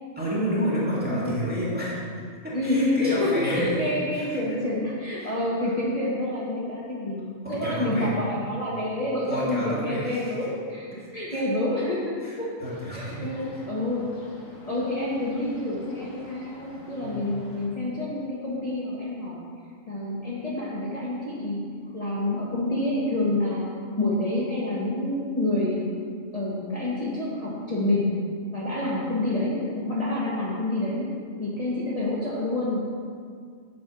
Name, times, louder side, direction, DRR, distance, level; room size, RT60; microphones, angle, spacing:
voice 1, 0.2-2.0 2.4-4.4 5.2-5.3 7.4-8.1 9.3-10.4 10.9-11.0 11.3-11.4 12.2-13.3 13.5-13.6 17.0-17.3, equal, 5° right, -8 dB, 2.0 m, -30 dB
voice 2, 1.0-1.6 2.5-10.9 11.1-12.5 12.9-14.1 14.7-19.5 19.9-21.6 21.9-23.7 24.0-25.9 26.3-28.1 28.5-31.0 31.4-32.8, left 1 dB, 30° left, -7 dB, 1.3 m, -28 dB
sound 1, 12.6-17.7, left 1 dB, 85° left, 1.8 m, -46 dB
8.1 x 5.4 x 6.9 m, 2.1 s
omnidirectional pair, 1.4 m